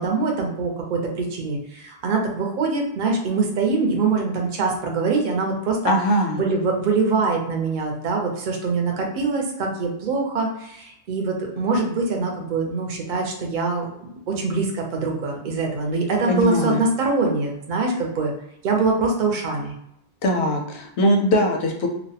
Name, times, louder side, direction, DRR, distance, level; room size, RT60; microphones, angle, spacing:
voice 1, 0.0-5.9 6.3-18.3 18.6-19.7, right 3 dB, 55° right, 1 dB, 0.7 m, -24 dB
voice 2, 5.8-6.4 16.3-16.8 20.2-21.9, equal, 85° left, 2 dB, 0.9 m, -21 dB
2.4 x 2.1 x 2.7 m, 0.77 s
omnidirectional pair, 1.1 m